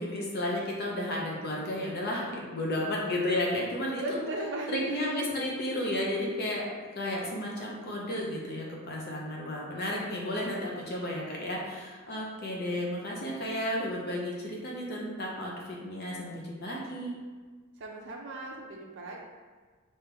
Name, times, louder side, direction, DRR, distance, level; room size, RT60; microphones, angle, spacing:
voice 1, 0.0-4.2 4.7-6.6 6.9-17.1, left 1 dB, 50° left, -3 dB, 0.7 m, -33 dB
voice 2, 3.9-5.3 17.8-19.2, right 2 dB, 60° right, -1 dB, 0.6 m, -36 dB
5.0 x 2.8 x 3.4 m, 1.5 s
head